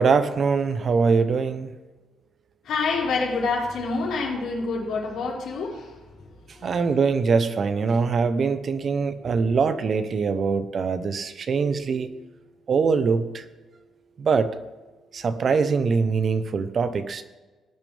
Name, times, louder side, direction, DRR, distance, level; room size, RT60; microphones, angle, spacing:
voice 1, 0.0-1.7 6.6-12.1 12.7-13.4 14.2-14.5 15.1-17.2, right 5 dB, 50° right, 11 dB, 0.9 m, -23 dB
voice 2, 2.6-6.0 6.5-6.8, left 4 dB, 75° left, -3 dB, 4.5 m, -27 dB
18.5 x 9.0 x 3.5 m, 1.3 s
cardioid pair, 90°, 0 cm